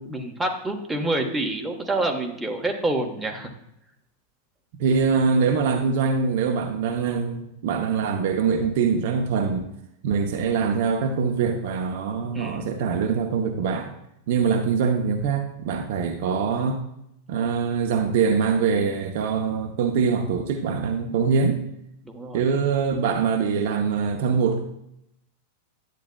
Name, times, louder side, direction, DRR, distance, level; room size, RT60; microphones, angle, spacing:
voice 1, 0.0-3.5 12.3-12.7 22.0-22.4, right 2 dB, 10° right, 2 dB, 1.2 m, -27 dB
voice 2, 4.8-9.7 10.0-13.9 14.3-16.8 17.3-21.6 22.3-24.6, right 5 dB, 50° right, 4 dB, 0.7 m, -23 dB
10.5 x 8.3 x 2.3 m, 0.80 s
figure-of-eight pair, 90°, 0 cm